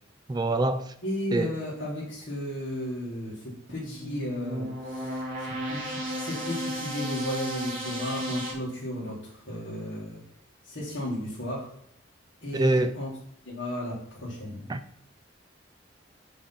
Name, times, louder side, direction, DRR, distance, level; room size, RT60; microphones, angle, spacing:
voice 1, 0.3-0.9 1.3-1.5 12.5-12.9 14.7-14.8, right 2 dB, 20° right, 10 dB, 0.3 m, -24 dB
voice 2, 1.0-10.2 10.6-11.7 12.4-13.1 13.5-14.7, left 1 dB, 65° left, -7 dB, 2.0 m, -34 dB
sound 1, 3.7-8.5, right 1 dB, 45° right, 3.0 m, -34 dB
6.9 x 5.0 x 5.7 m, 0.70 s
head